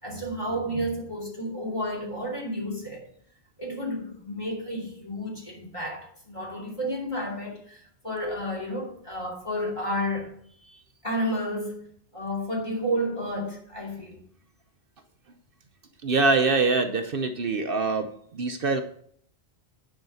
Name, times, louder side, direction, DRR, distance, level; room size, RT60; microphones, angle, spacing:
voice 1, 0.0-3.1 3.6-10.3 11.0-11.8 12.1-14.2, equal, 30° left, 2.9 m, -31 dB
voice 2, 16.0-18.8, right 3 dB, 60° right, 0.9 m, -24 dB
9.4 x 4.9 x 7.7 m
omnidirectional pair, 1.1 m